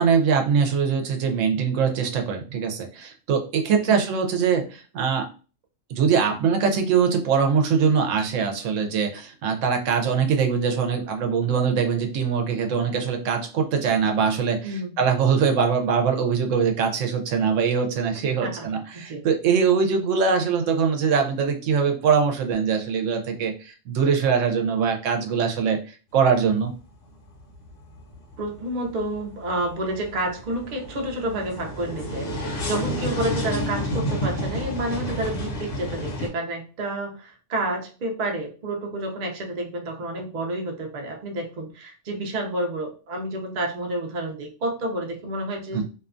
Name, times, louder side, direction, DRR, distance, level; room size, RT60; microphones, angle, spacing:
voice 1, 0.0-5.3 5.9-26.7 45.7-45.8, right 6 dB, 75° right, 3 dB, 0.9 m, -22 dB
voice 2, 14.6-15.0 18.1-18.7 18.9-19.2 28.4-45.8, right 1 dB, 55° right, 2 dB, 0.5 m, -30 dB
sound 1, 26.1-26.8 27.1-36.3, equal, 70° left, 1.1 m, -31 dB
2.6 x 2.2 x 2.4 m, 0.35 s
omnidirectional pair, 1.3 m